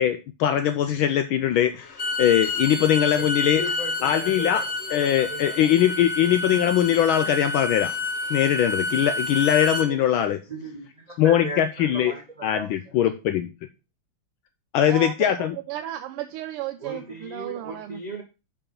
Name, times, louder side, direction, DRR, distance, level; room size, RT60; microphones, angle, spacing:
voice 1, 0.0-3.6 4.0-4.6 4.9-7.9 8.3-10.4 11.2-12.1 12.4-13.5 14.7-15.6, left 10 dB, 75° left, 9 dB, 1.3 m, -21 dB
Bowed string instrument, 1.8-9.9, left 3 dB, 40° left, 1.2 m, -29 dB
voice 2, 3.5-5.8 9.6-10.1 10.5-12.7 16.8-18.2, right 2 dB, 25° right, 1 dB, 0.9 m, -37 dB
voice 3, 14.8-18.0, right 13 dB, 85° right, 8 dB, 1.6 m, -34 dB
6.8 x 5.2 x 5.3 m, 0.29 s
omnidirectional pair, 2.4 m